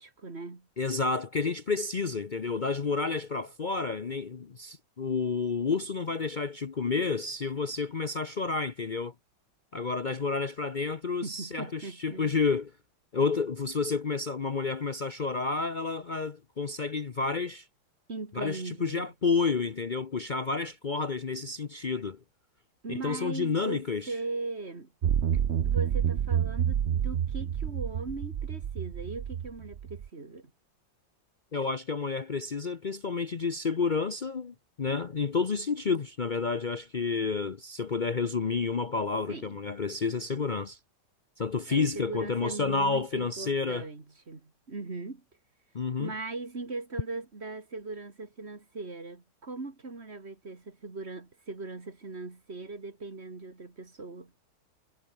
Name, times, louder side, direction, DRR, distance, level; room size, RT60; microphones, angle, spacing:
voice 1, 0.0-0.7 11.2-12.3 18.1-19.1 22.8-24.9 25.6-30.5 39.3-39.6 41.7-45.2 46.0-54.3, right 3 dB, 30° right, 2.7 m, -39 dB
voice 2, 0.8-9.1 9.7-12.7 13.1-17.7 18.3-22.2 22.9-24.1 31.5-40.8 41.4-43.9 45.7-46.1, left 4 dB, 85° left, 0.4 m, -30 dB
sound 1, 25.0-30.1, right 9 dB, 85° right, 0.6 m, -29 dB
omnidirectional pair, 2.3 m